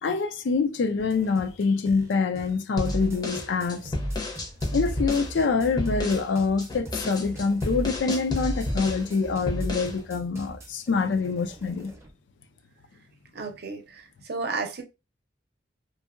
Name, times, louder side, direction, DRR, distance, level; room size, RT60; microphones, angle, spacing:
voice 1, 0.0-3.9 4.7-11.9, left 4 dB, 75° left, 0.4 m, -25 dB
sound 1, 1.0-12.1, right 1 dB, 15° right, 0.6 m, -44 dB
sound 2, 2.8-5.3 5.8-6.3 6.6-9.1 9.5-10.0, left 1 dB, 25° left, 0.6 m, -30 dB
voice 2, 13.3-14.8, right 4 dB, 60° right, 0.6 m, -33 dB
2.7 x 2.6 x 2.4 m
head